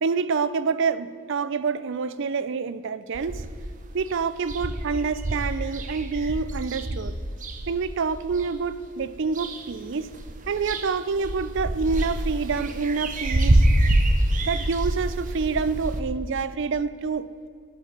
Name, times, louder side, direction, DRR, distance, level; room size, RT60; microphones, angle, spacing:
voice 1, 0.0-3.4 3.9-7.1 7.7-10.1 10.5-13.7 14.4-17.3, right 5 dB, 60° right, 14 dB, 0.5 m, -27 dB
sound 1, 3.1-3.7 4.1-4.2 4.4-8.5 9.0-9.8 10.1-16.0, right 1 dB, 40° right, 0.8 m, -25 dB
11.0 x 6.2 x 7.5 m, 2.2 s
head